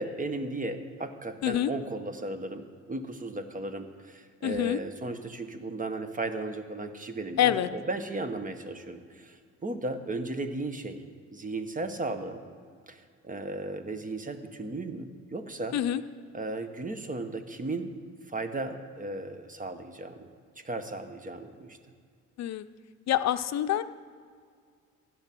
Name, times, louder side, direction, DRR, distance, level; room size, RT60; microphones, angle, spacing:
voice 1, 0.0-11.0 11.3-12.4 12.9-15.8 16.3-17.9 18.3-20.3 20.6-21.8, right 2 dB, 25° right, 8 dB, 1.2 m, -35 dB
voice 2, 4.4-4.8 7.4-7.7 15.7-16.0 22.4-22.7 23.1-23.8, left 11 dB, 60° left, 11 dB, 0.6 m, -26 dB
16.0 x 9.0 x 6.0 m, 2.1 s
cardioid pair, 90°, 30 cm